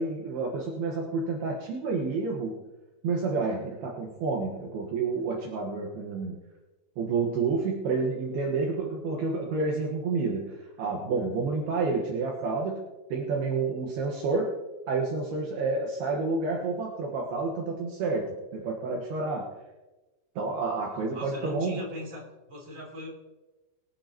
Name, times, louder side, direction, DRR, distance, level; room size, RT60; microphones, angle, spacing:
voice 1, 0.0-2.6 3.0-6.4 7.0-12.8 13.1-14.5 14.9-19.5 20.4-21.8, right 4 dB, 70° right, -1 dB, 3.1 m, -29 dB
voice 2, 21.1-23.1, left 1 dB, 20° right, -1 dB, 2.4 m, -39 dB
24.0 x 9.0 x 2.9 m, 1.1 s
omnidirectional pair, 5.1 m